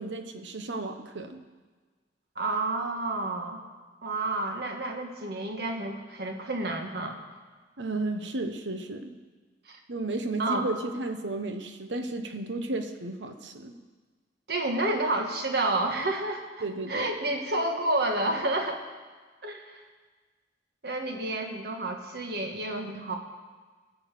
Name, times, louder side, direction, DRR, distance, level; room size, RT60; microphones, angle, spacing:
voice 1, 0.0-1.4 7.8-9.2 9.9-13.7 16.6-17.1, right 2 dB, 80° right, 7 dB, 1.1 m, -33 dB
voice 2, 2.3-3.6 4.0-7.2 9.7-9.8 10.4-10.7 14.5-18.8 19.4-19.8 20.8-23.2, right 2 dB, 60° right, 3 dB, 1.6 m, -30 dB
16.0 x 7.2 x 6.7 m, 1.4 s
head